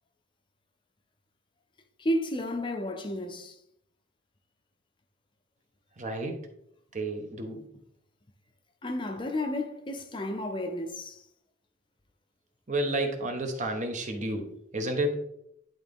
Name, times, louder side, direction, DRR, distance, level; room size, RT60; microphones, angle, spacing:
voice 1, 2.0-3.6 8.8-11.2, left 1 dB, 25° left, 0.6 m, -32 dB
voice 2, 6.0-6.4 6.9-7.7 12.7-14.5 14.7-15.2, right 1 dB, 40° right, 1.1 m, -31 dB
10.5 x 3.9 x 3.6 m
head